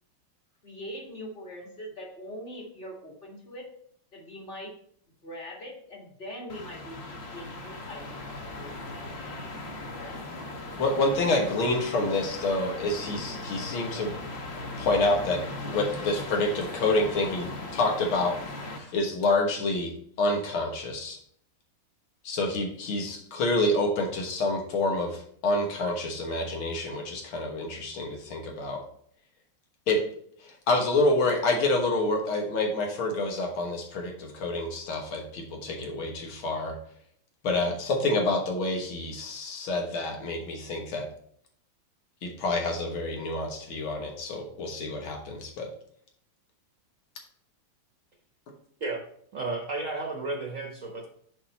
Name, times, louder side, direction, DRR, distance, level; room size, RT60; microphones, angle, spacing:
voice 1, 0.6-3.7 4.1-4.7 5.2-8.0 8.3-9.3 9.8-10.2, equal, 25° left, 0 dB, 1.9 m, -42 dB
sound 1, 6.5-18.8, left 2 dB, 45° left, 0.9 m, -38 dB
voice 2, 10.8-14.1 14.8-18.5 18.8-21.2 22.2-28.8 29.9-30.0 30.4-36.8 37.4-41.1 42.2-45.7, left 2 dB, 85° left, 2 dB, 2.1 m, -28 dB
voice 3, 49.3-51.1, right 3 dB, 50° right, 1 dB, 1.1 m, -33 dB
7.3 x 4.9 x 4.1 m, 0.63 s
omnidirectional pair, 2.2 m